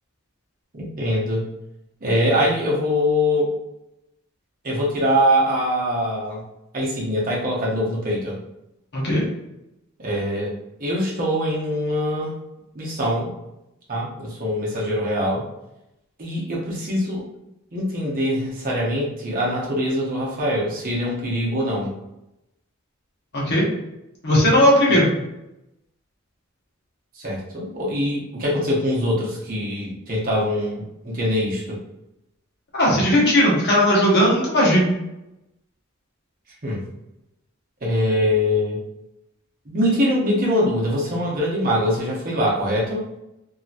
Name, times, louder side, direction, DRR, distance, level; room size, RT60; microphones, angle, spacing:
voice 1, 0.7-1.5 2.0-3.5 4.6-6.4 6.7-8.4 10.0-10.5 10.8-12.3 12.7-13.3 13.9-15.4 16.2-17.3 17.7-21.9 27.2-31.8 36.6-36.8 37.8-38.8 39.7-43.0, equal, 40° right, -5 dB, 0.9 m, -23 dB
voice 2, 8.9-9.2 23.3-23.7 24.2-25.1 32.7-34.8, equal, 50° left, -5 dB, 1.1 m, -17 dB
2.8 x 2.8 x 2.4 m, 0.89 s
head